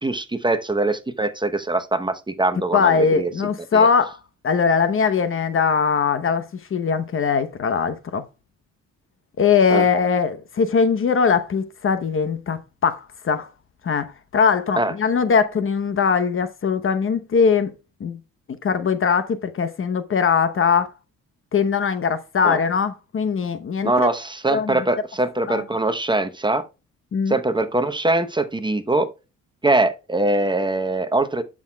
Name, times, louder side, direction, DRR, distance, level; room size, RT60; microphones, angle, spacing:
voice 1, 0.0-3.3 3.7-3.9 9.7-9.8 14.8-14.9 22.4-22.6 23.8-26.6 27.3-29.1 29.6-31.4, right 2 dB, 15° right, 0.8 m, -22 dB
voice 2, 2.7-4.2 4.4-6.5 6.7-8.2 9.4-13.5 13.8-17.7 18.0-18.2 18.6-20.9 21.5-24.1 24.5-24.8 25.5-25.6 27.1-27.4, left 6 dB, 45° left, 0.9 m, -21 dB
11.0 x 6.2 x 2.3 m
cardioid pair, 90°, 30 cm